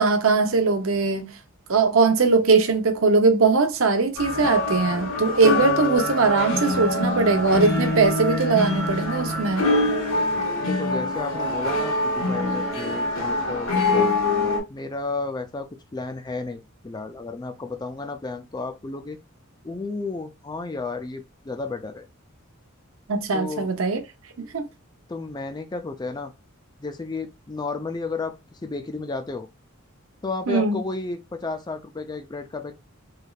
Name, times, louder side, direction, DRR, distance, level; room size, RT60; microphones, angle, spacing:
voice 1, 0.0-1.3 1.7-9.7 23.1-24.0 24.4-24.6 30.5-30.8, right 4 dB, 70° right, 0.7 m, -20 dB
sound 1, 4.2-14.6, left 2 dB, 65° left, 1.3 m, -24 dB
voice 2, 10.6-14.1 14.7-19.2 19.6-22.1 23.3-23.7 25.1-26.3 26.8-29.5 30.2-32.7, left 3 dB, 20° left, 0.4 m, -32 dB
3.3 x 3.1 x 2.3 m
head